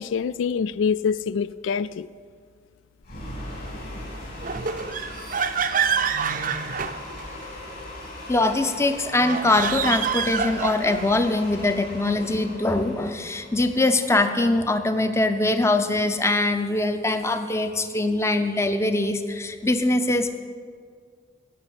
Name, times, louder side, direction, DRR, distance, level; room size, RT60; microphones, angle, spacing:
voice 1, 0.0-2.1, left 6 dB, 75° left, 0.3 m, -25 dB
sound 1, 3.0-15.2, left 1 dB, 50° left, 3.8 m, -39 dB
sound 2, 4.4-7.5 9.1-11.2, right 6 dB, 45° right, 0.6 m, -27 dB
voice 2, 8.3-20.3, left 2 dB, 15° left, 0.6 m, -22 dB
17.5 x 6.2 x 8.5 m
head